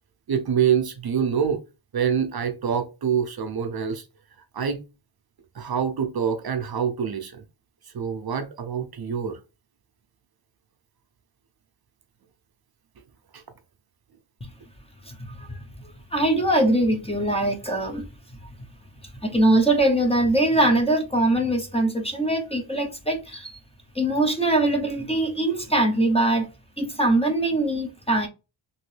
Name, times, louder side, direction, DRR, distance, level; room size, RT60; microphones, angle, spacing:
voice 1, 0.3-1.6 1.9-4.0 4.5-4.8 5.5-7.4 7.9-9.4 13.3-13.4, right 7 dB, 50° right, 0.5 m, -25 dB
voice 2, 15.0-18.4 19.2-23.6 23.9-26.5 26.8-28.3, right 1 dB, 15° left, 0.6 m, -22 dB
2.9 x 2.7 x 3.1 m
wide cardioid pair, 100°, 49 cm